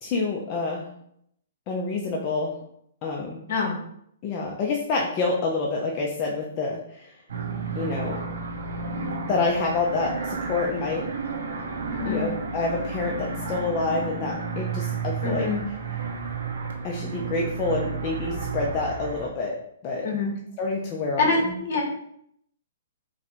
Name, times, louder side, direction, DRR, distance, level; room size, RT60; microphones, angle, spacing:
voice 1, 0.0-0.8 1.7-2.5 3.0-3.4 4.2-7.1 7.7-8.2 9.3-11.0 12.1-15.5 16.8-19.6 19.8-20.1 20.6-21.8, left 3 dB, 30° left, -1 dB, 0.4 m, -27 dB
sound 1, 7.3-19.3, right 4 dB, 80° right, 0.7 m, -32 dB
voice 2, 11.9-12.3 15.2-15.6 20.0-20.3 21.2-21.8, left 3 dB, 60° left, 0 dB, 1.0 m, -25 dB
4.1 x 2.1 x 2.8 m, 0.71 s
hypercardioid pair, 150°, 0 cm